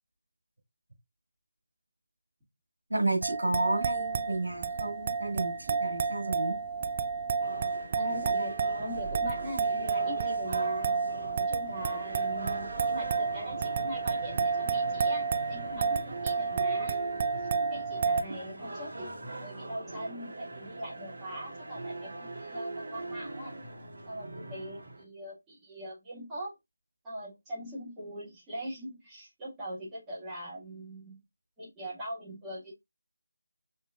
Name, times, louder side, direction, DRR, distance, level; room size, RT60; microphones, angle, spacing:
voice 1, 2.9-6.6, right 2 dB, 80° right, 1.8 m, -31 dB
wine glass, 3.2-18.2, right 5 dB, 30° right, 0.4 m, -31 dB
sound 1, 7.4-25.0, right 2 dB, 50° right, 2.6 m, -42 dB
voice 2, 8.0-11.0 11.4-17.0 17.4-19.1 19.4-23.6 24.1-26.5 27.0-31.2 31.6-32.7, equal, 10° right, 1.8 m, -41 dB
6.4 x 3.0 x 2.4 m
figure-of-eight pair, 160°, 0 cm